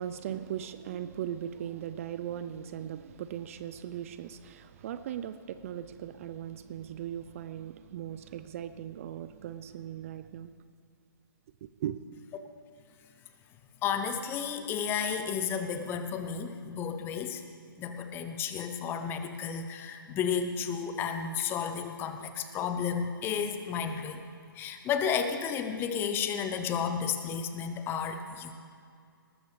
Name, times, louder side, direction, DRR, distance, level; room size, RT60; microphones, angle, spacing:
voice 1, 0.0-10.5 11.6-12.0, right 10 dB, 35° right, 12 dB, 0.5 m, -38 dB
voice 2, 13.8-17.4 17.8-24.2 24.5-28.5, left 7 dB, 20° left, 8 dB, 0.8 m, -32 dB
19.5 x 13.5 x 3.3 m, 2.3 s
figure-of-eight pair, 135°, 12 cm